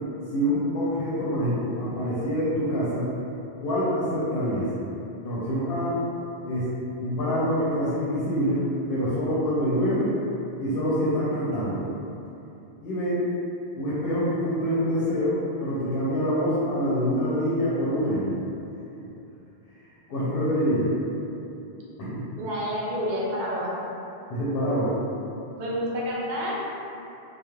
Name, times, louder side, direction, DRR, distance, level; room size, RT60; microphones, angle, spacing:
voice 1, 0.3-3.1 3.6-4.7 5.2-6.0 6.4-6.7 7.0-10.1 10.6-11.9 12.8-13.3 13.8-18.4 20.1-20.9 22.1-22.2 24.3-25.0, equal, 70° left, -9 dB, 0.7 m, -25 dB
voice 2, 22.4-23.7 25.6-26.5, equal, 55° right, -6 dB, 0.6 m, -29 dB
2.3 x 2.0 x 3.0 m, 2.8 s
omnidirectional pair, 1.1 m